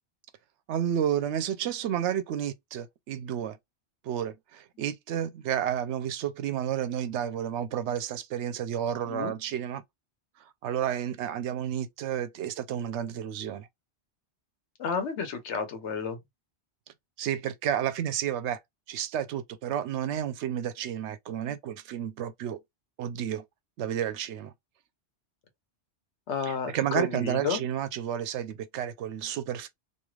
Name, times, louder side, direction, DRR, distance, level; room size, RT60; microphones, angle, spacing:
voice 1, 0.7-3.6 4.0-9.8 10.6-13.7 17.2-18.6 18.9-22.6 23.0-23.4 23.8-24.5 26.4-29.7, right 10 dB, 80° right, 0.9 m, -31 dB
voice 2, 14.8-16.2 26.3-27.6, left 6 dB, 85° left, 1.1 m, -31 dB
3.1 x 2.6 x 2.3 m
omnidirectional pair, 1.2 m